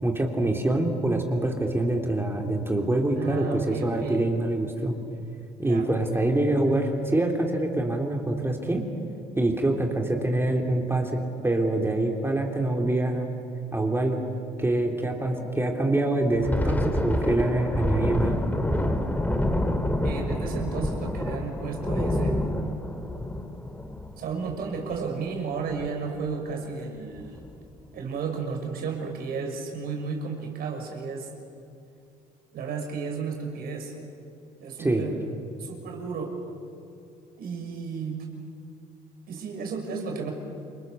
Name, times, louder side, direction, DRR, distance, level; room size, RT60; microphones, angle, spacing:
voice 1, 0.0-4.9 5.6-8.8 9.3-13.3 13.7-14.2 14.6-18.4 34.8-35.1, right 2 dB, 15° right, 2 dB, 3.5 m, -25 dB
voice 2, 3.2-4.2 5.6-5.8 20.0-22.6 24.2-27.4 27.9-31.3 32.5-34.0 34.6-35.2 35.6-36.4 37.4-38.3 39.3-40.3, right 5 dB, 70° right, 2 dB, 6.3 m, -33 dB
Thunder, 16.3-25.3 25.7-25.9 26.3-26.5 27.1-27.6, left 1 dB, 10° left, 2.4 m, -27 dB
29.5 x 24.0 x 6.9 m, 2.5 s
supercardioid pair, 80°, 16 cm